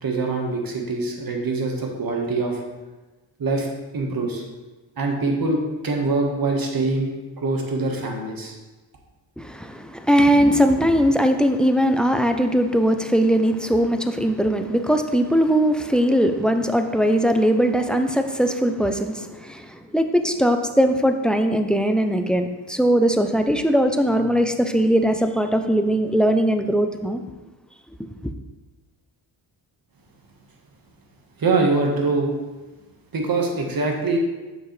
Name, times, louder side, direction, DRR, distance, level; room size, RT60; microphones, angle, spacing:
voice 1, 0.0-2.6 3.4-3.7 3.9-4.4 5.0-7.1 7.4-8.5 31.4-32.3 33.1-34.2, right 3 dB, 45° right, 1 dB, 1.5 m, -23 dB
voice 2, 9.4-27.2, equal, ahead, 7 dB, 0.5 m, -20 dB
7.3 x 6.2 x 3.3 m, 1.2 s
cardioid pair, 80°, 49 cm